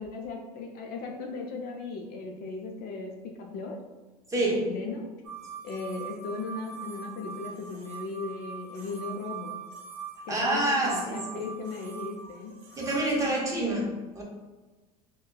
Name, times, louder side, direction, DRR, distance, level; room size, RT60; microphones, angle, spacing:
voice 1, 0.0-3.8 4.4-5.1 5.6-9.6 10.3-12.5, left 3 dB, 50° left, 1 dB, 0.5 m, -37 dB
voice 2, 4.3-4.6 10.3-11.5 12.8-14.2, right 1 dB, 15° right, -4 dB, 0.9 m, -27 dB
sound 1, 5.2-13.1, right 6 dB, 70° right, 0.8 m, -42 dB
3.8 x 2.2 x 2.3 m, 1.2 s
supercardioid pair, 105°, 19 cm